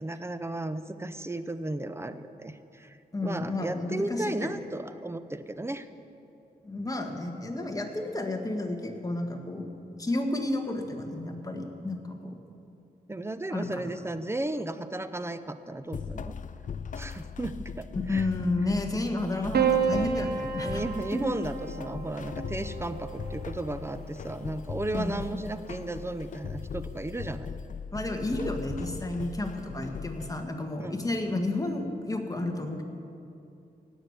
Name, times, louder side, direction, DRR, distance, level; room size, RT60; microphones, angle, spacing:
voice 1, 0.0-3.0 3.2-5.9 13.1-16.3 17.0-18.3 20.0-20.1 20.6-27.5 30.8-31.0, right 2 dB, 15° right, 11 dB, 0.7 m, -34 dB
voice 2, 3.1-4.5 6.6-9.7 10.0-12.4 13.5-13.8 18.1-20.8 21.1-21.4 24.9-25.1 27.9-32.8, left 2 dB, 20° left, 3 dB, 1.7 m, -31 dB
sound 1, 15.9-30.4, left 6 dB, 55° left, 0.4 m, -39 dB
Piano, 19.5-24.0 25.2-25.9, right 7 dB, 80° right, 1.3 m, -31 dB
17.0 x 6.4 x 9.5 m, 2.7 s
cardioid pair, 75°, 16 cm